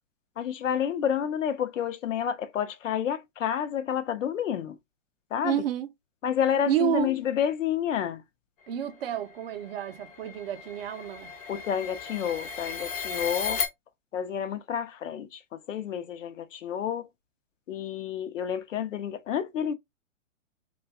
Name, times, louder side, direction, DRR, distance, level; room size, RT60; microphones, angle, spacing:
voice 1, 0.4-4.8 5.3-5.6 6.2-8.2 11.5-13.6 14.1-17.1 17.7-19.7, left 9 dB, 70° left, 0.6 m, -29 dB
voice 2, 5.4-5.9 6.7-7.1 8.7-11.3, right 12 dB, 50° right, 0.5 m, -29 dB
sound 1, 8.9-13.7, left 5 dB, 30° left, 0.5 m, -35 dB
2.5 x 2.3 x 2.2 m
hypercardioid pair, 120°, 39 cm